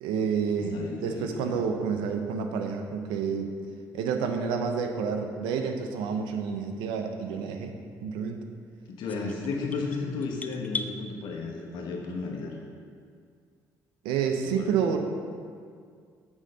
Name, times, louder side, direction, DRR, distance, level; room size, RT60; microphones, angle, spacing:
voice 1, 0.0-3.5 3.9-7.7 8.0-8.4 14.0-15.0, right 6 dB, 85° right, 5 dB, 0.6 m, -29 dB
voice 2, 0.6-1.6 8.9-12.6 14.5-14.7, left 4 dB, 75° left, 0 dB, 1.2 m, -34 dB
sound 1, 9.1-10.9, left 3 dB, 20° left, 0.4 m, -37 dB
7.4 x 3.8 x 6.4 m, 2.1 s
supercardioid pair, 70°, 8 cm